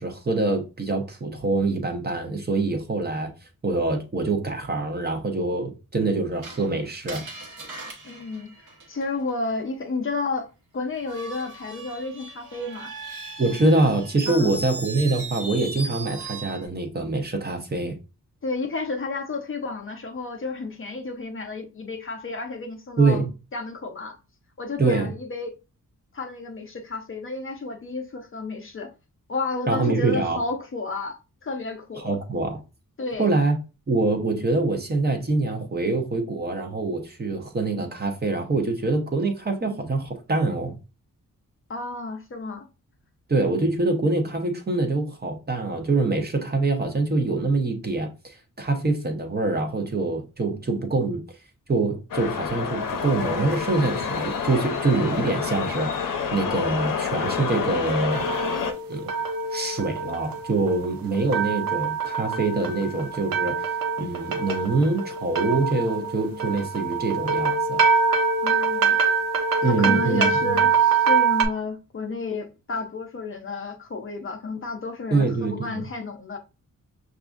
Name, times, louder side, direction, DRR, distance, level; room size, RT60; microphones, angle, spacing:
voice 1, 0.0-3.3 3.6-7.2 13.4-17.9 23.0-23.3 24.8-25.1 29.7-30.4 32.0-32.6 33.2-33.6 33.9-40.8 43.3-51.2 51.7-55.9 56.3-58.3 58.9-59.1 59.5-63.6 64.0-67.8 69.6-70.6 75.1-75.8, right 3 dB, 30° right, 0.7 m, -25 dB
Screech, 6.4-9.3 10.9-16.7, right 3 dB, 65° right, 1.0 m, -38 dB
voice 2, 8.0-8.5 8.9-12.9 14.3-14.6 18.4-23.2 23.5-24.2 24.6-25.5 26.1-28.9 29.3-32.0 33.0-33.3 41.7-42.7 68.4-69.0 69.6-76.4, left 3 dB, 40° left, 0.6 m, -31 dB
sound 1, 52.1-58.7, left 6 dB, 75° left, 0.6 m, -28 dB
sound 2, 58.1-71.4, right 5 dB, 90° right, 0.6 m, -24 dB
6.0 x 2.5 x 2.4 m
wide cardioid pair, 145°, 33 cm